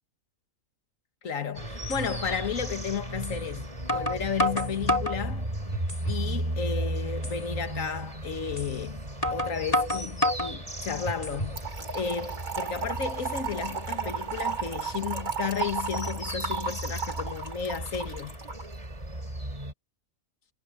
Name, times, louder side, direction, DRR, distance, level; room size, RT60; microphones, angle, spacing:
voice 1, 1.2-5.5 6.1-11.6 11.9-18.4, left 6 dB, 60° left, 2.1 m, -33 dB
sound 1, 1.3-1.4 1.9-2.0 3.2-3.4 3.9-5.2 5.7-6.3 6.6-6.7 7.2-7.4 8.6-8.7 9.2-10.5 11.0-11.6, left 1 dB, 25° left, 3.8 m, -28 dB
sound 2, 1.5-19.7, right 1 dB, 25° right, 3.4 m, -36 dB
Trickle dribble / Fill (with liquid), 11.6-18.6, right 6 dB, 90° right, 6.1 m, -34 dB
omnidirectional pair, 1.5 m